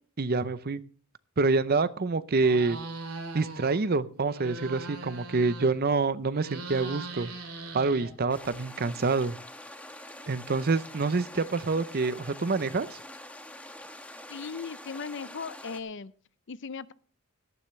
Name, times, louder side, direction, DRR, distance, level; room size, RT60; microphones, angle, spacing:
voice 1, 0.2-0.8 1.4-2.8 3.3-7.3 7.7-9.4 10.3-13.0, right 3 dB, 45° right, 15 dB, 0.6 m, -27 dB
sound 1, 2.4-3.8 4.1-5.9 6.3-8.5, right 3 dB, 75° right, 3.1 m, -40 dB
sound 2, 8.3-15.8, left 1 dB, 5° left, 1.2 m, -45 dB
voice 2, 14.3-16.1 16.5-16.9, left 5 dB, 55° left, 16 dB, 0.6 m, -37 dB
17.5 x 13.0 x 3.2 m, 0.40 s
head